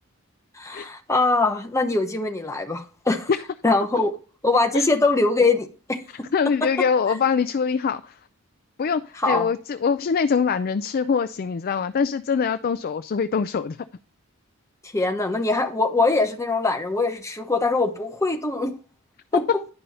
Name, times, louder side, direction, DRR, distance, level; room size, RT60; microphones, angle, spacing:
voice 1, 0.5-3.3 3.6-4.1 4.4-6.0 9.2-9.5 14.8-18.7 19.3-19.4, left 3 dB, 15° left, 0.9 m, -22 dB
voice 2, 6.3-8.2 8.8-13.8, left 6 dB, 45° left, 0.4 m, -23 dB
10.0 x 5.5 x 4.2 m
head